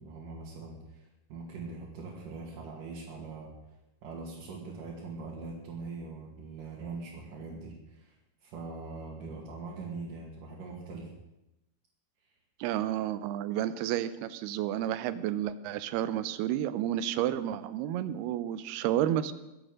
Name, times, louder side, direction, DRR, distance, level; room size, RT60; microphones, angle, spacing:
voice 1, 0.0-3.5 4.0-11.1, right 3 dB, 60° right, -4 dB, 3.6 m, -42 dB
voice 2, 12.6-19.3, right 11 dB, 85° right, 13 dB, 2.7 m, -31 dB
22.5 x 8.1 x 6.4 m, 0.94 s
omnidirectional pair, 4.5 m